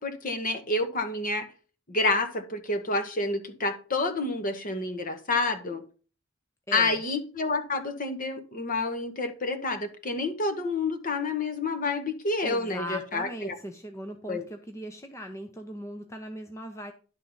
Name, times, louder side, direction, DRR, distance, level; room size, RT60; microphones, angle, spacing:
voice 1, 0.0-1.5 1.9-5.8 6.7-13.5 14.3-14.4, left 3 dB, 40° left, 8 dB, 1.1 m, -29 dB
voice 2, 6.7-7.0 12.4-16.9, equal, 15° left, 5 dB, 0.7 m, -39 dB
11.0 x 3.7 x 5.4 m, 0.37 s
head